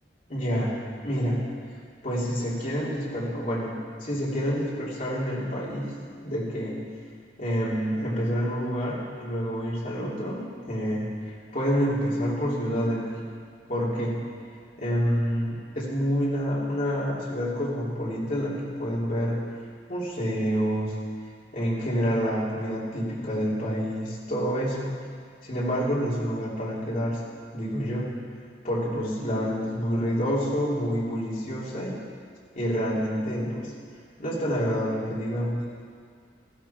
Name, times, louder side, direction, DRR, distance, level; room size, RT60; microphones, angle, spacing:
voice 1, 0.3-1.4 2.0-6.8 7.4-13.1 13.7-14.2 14.8-19.4 19.9-20.9 21.5-24.9 25.4-27.2 27.5-28.1 28.6-32.0 32.5-33.7 34.2-35.8, equal, 45° left, -6 dB, 3.4 m, -28 dB
15.0 x 11.5 x 4.5 m, 2.1 s
head